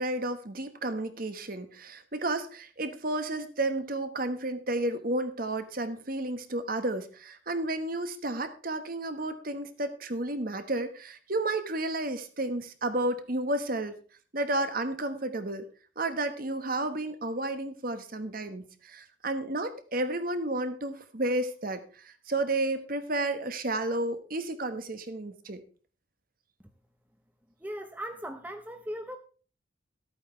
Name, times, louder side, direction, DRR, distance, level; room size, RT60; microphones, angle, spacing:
voice 1, 0.0-14.0 14.3-15.6 16.0-25.6, right 2 dB, 45° right, 10 dB, 1.2 m, -32 dB
voice 2, 27.6-29.2, equal, 10° right, 6 dB, 0.6 m, -38 dB
13.0 x 8.7 x 4.4 m, 0.40 s
head